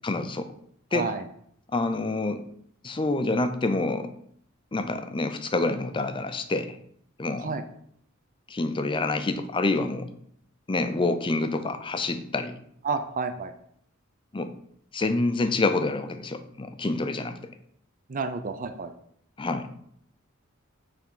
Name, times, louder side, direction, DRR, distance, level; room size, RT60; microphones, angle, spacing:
voice 1, 0.0-0.5 0.9-1.1 1.7-2.4 2.8-4.1 4.7-6.8 7.2-7.5 8.5-10.1 10.7-12.5 14.3-14.5 14.9-17.4 19.4-19.7, left 2 dB, 25° left, 9 dB, 0.5 m, -27 dB
voice 2, 0.9-1.2 7.4-7.6 12.8-13.5 18.1-18.9, right 4 dB, 40° right, 8 dB, 0.5 m, -30 dB
7.0 x 3.5 x 5.6 m, 0.68 s
head